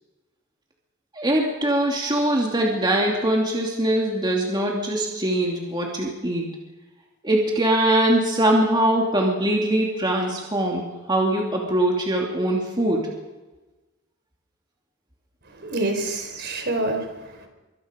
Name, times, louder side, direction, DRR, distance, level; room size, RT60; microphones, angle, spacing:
voice 1, 1.1-6.5 7.2-13.0, right 1 dB, 20° right, -1 dB, 2.7 m, -22 dB
voice 2, 15.5-17.5, right 2 dB, 50° right, 5 dB, 4.2 m, -27 dB
25.0 x 24.5 x 5.3 m, 1.1 s
head